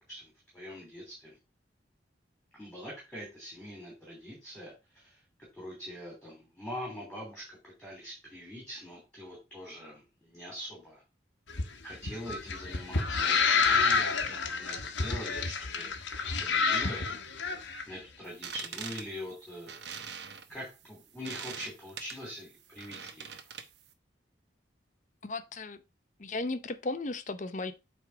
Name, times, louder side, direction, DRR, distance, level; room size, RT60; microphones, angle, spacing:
voice 1, 0.1-1.4 2.5-5.2 5.5-11.0 11.8-15.9 16.4-17.1 17.9-20.0 20.5-23.3, equal, 5° left, 2.9 m, -43 dB
sound 1, 11.5-17.8, left 5 dB, 90° left, 1.2 m, -29 dB
sound 2, 18.3-23.9, right 7 dB, 70° right, 0.9 m, -43 dB
voice 2, 25.2-25.8 26.2-27.7, left 2 dB, 40° left, 0.6 m, -35 dB
8.2 x 3.6 x 4.8 m
head